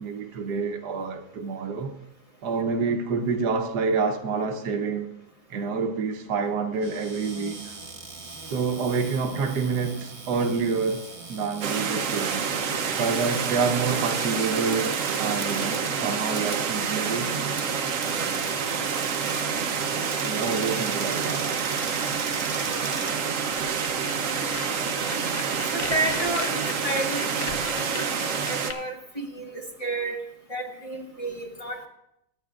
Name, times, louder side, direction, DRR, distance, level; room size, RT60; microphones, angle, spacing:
voice 1, 0.0-1.9 2.4-5.1 5.5-7.8 8.5-12.5 13.0-17.5 20.2-21.6, right 5 dB, 70° right, 1.4 m, -28 dB
Cupboard open or close, 6.7-23.8, right 3 dB, 35° right, 1.5 m, -42 dB
sound 1, 11.6-28.7, right 6 dB, 55° right, 1.1 m, -28 dB
voice 2, 22.6-23.3 25.7-30.2 30.5-31.9, right 2 dB, 20° left, 1.3 m, -32 dB
Bed Sex Sounds, 23.5-28.7, left 5 dB, 65° left, 0.4 m, -37 dB
23.0 x 9.1 x 2.4 m
omnidirectional pair, 1.8 m